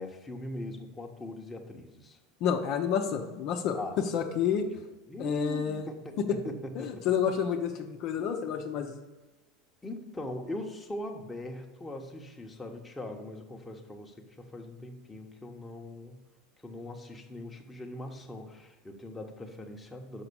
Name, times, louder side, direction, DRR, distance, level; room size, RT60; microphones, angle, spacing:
voice 1, 0.0-2.2 3.7-4.0 4.5-7.2 9.8-16.2 16.6-20.2, left 1 dB, 15° left, 2 dB, 1.1 m, -41 dB
voice 2, 2.4-3.8 4.1-4.7 5.2-5.9 6.2-6.4 6.8-9.0, left 8 dB, 55° left, 4 dB, 0.8 m, -29 dB
5.8 x 5.6 x 7.0 m, 1.2 s
hypercardioid pair, 95°, 0 cm